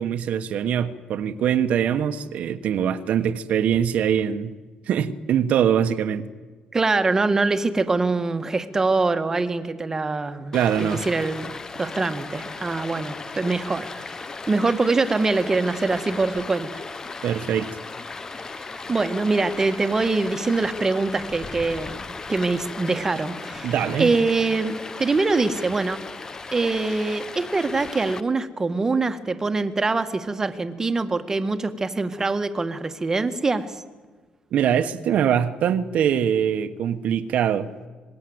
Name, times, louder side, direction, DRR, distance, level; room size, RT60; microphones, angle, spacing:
voice 1, 0.0-4.5 4.9-6.3 10.5-11.0 17.2-17.7 23.6-24.1 34.5-37.7, right 9 dB, 60° right, 9 dB, 1.3 m, -23 dB
voice 2, 6.7-11.5 11.8-16.8 18.9-22.0 22.3-23.7 24.0-26.0 26.5-33.8, right 3 dB, 20° right, 9 dB, 1.7 m, -24 dB
Stream, 10.5-28.2, left 4 dB, 25° left, 1.0 m, -36 dB
26.0 x 20.5 x 8.0 m, 1.3 s
cardioid pair, 135°, 3 cm